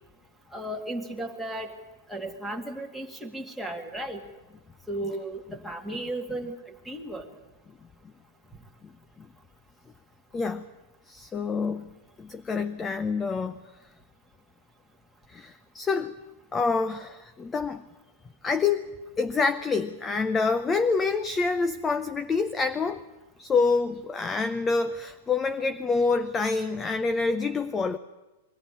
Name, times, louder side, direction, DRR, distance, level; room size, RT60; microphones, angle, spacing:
voice 1, 0.5-1.7 2.1-4.2 4.9-6.5 6.9-7.3, right 1 dB, ahead, 5 dB, 2.2 m, -34 dB
voice 2, 10.3-10.7 11.1-11.9 12.2-13.6 15.3-16.2 16.5-17.8 18.4-23.0 23.4-28.0, left 4 dB, 15° left, 11 dB, 0.6 m, -27 dB
22.5 x 14.5 x 9.8 m, 1.1 s
hypercardioid pair, 140°, 0 cm